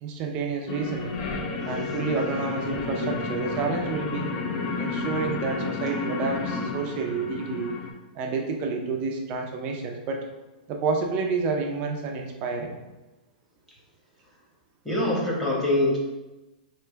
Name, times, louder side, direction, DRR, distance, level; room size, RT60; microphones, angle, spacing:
voice 1, 0.0-1.2 1.6-4.3 4.8-7.8 8.1-10.2 10.7-12.8, right 4 dB, 30° right, 2 dB, 0.5 m, -29 dB
sound 1, 0.7-7.9, left 3 dB, 35° left, 0.5 m, -31 dB
voice 2, 14.8-16.0, left 1 dB, 5° left, -6 dB, 1.1 m, -24 dB
3.3 x 2.9 x 4.4 m, 1.1 s
hypercardioid pair, 160°, 5 cm